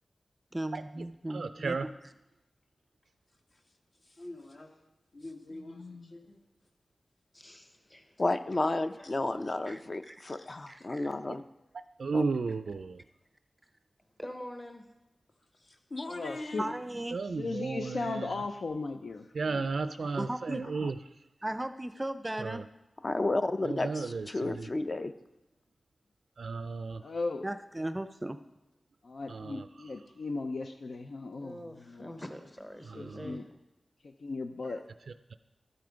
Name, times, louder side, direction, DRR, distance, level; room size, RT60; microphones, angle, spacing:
voice 1, 0.5-1.9 9.7-9.8 10.1-10.2 10.7-11.1 16.6-17.2 20.0-20.6 21.4-22.6 27.4-28.4, right 1 dB, 15° right, 10 dB, 0.4 m, -36 dB
voice 2, 1.3-1.9 12.0-13.0 17.1-18.3 19.4-20.9 22.4-22.6 23.7-24.7 26.4-27.0 29.3-29.7 33.0-33.3, right 4 dB, 85° right, 10 dB, 0.4 m, -34 dB
voice 3, 4.0-4.7 5.1-6.4 15.4-16.7 27.0-27.1, left 2 dB, 60° left, 2 dB, 1.6 m, -43 dB
voice 4, 5.7-6.1 16.1-16.7 17.4-19.7 27.0-27.5 29.0-32.1 33.0-33.4 34.0-34.8, left 3 dB, 80° left, 6 dB, 0.6 m, -37 dB
voice 5, 7.3-8.2 9.0-9.1 14.2-14.9 31.4-33.6, equal, 15° left, 6 dB, 0.9 m, -45 dB
voice 6, 8.2-11.4 12.1-12.2 20.8-20.9 23.0-25.1, left 2 dB, 40° left, 9 dB, 0.6 m, -31 dB
12.5 x 9.3 x 5.1 m, 0.95 s
wide cardioid pair, 110°, 0 cm